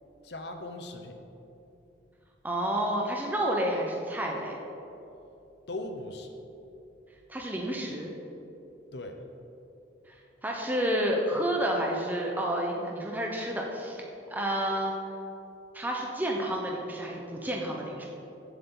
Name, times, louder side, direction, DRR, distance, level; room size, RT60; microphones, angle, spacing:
voice 1, 0.2-1.2 5.7-6.4 8.9-9.2, left 2 dB, 60° left, 5 dB, 0.9 m, -39 dB
voice 2, 2.4-4.6 7.3-8.1 10.1-14.0 14.3-14.9 15.7-18.1, right 1 dB, 10° right, -1 dB, 0.9 m, -30 dB
15.0 x 8.1 x 3.9 m, 2.9 s
head